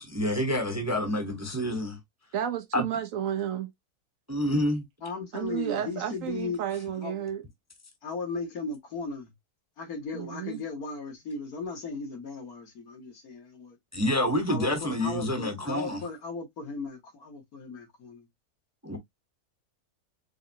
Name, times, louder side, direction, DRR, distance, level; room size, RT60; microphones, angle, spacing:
voice 1, 0.0-2.0 2.7-2.8 4.3-4.8 13.9-16.0 18.8-19.0, left 1 dB, 15° right, 0.8 m, -28 dB
voice 2, 2.3-3.7 5.3-7.4 10.1-10.6, right 10 dB, 70° right, 1.0 m, -32 dB
voice 3, 5.0-6.6 6.9-7.1 8.0-9.3 9.8-13.8 14.5-18.3, left 4 dB, 70° left, 2.1 m, -36 dB
4.8 x 3.2 x 2.7 m
omnidirectional pair, 1.6 m